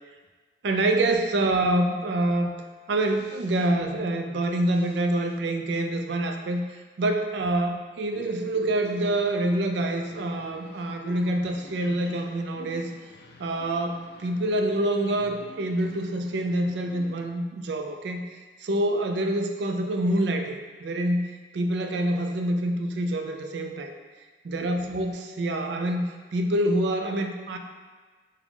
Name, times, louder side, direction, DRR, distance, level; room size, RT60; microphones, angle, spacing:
voice 1, 0.6-2.6 2.9-12.9 13.4-23.9 24.4-26.0 26.3-27.6, right 1 dB, 70° right, 5 dB, 0.4 m, -26 dB
sound 1, 8.1-17.3, left 2 dB, 60° left, 0.4 m, -47 dB
4.8 x 2.1 x 3.5 m, 1.4 s
head